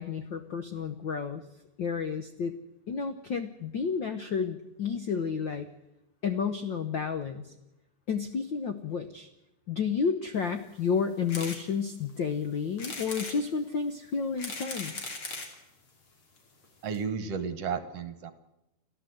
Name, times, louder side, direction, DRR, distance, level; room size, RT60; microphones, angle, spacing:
voice 1, 0.0-1.4 1.8-2.5 2.9-5.7 6.2-7.5 8.1-9.3 9.7-15.1, left 6 dB, 90° left, 9 dB, 1.0 m, -31 dB
sound 1, 11.3-11.6 12.1-12.2 12.8-13.4 14.1-15.6 16.4-16.5 16.6-16.7 16.9-17.0, left 3 dB, 45° left, 3.6 m, -38 dB
voice 2, 16.8-18.3, right 6 dB, 60° right, 11 dB, 1.9 m, -33 dB
30.0 x 12.0 x 7.8 m, 0.90 s
omnidirectional pair, 3.6 m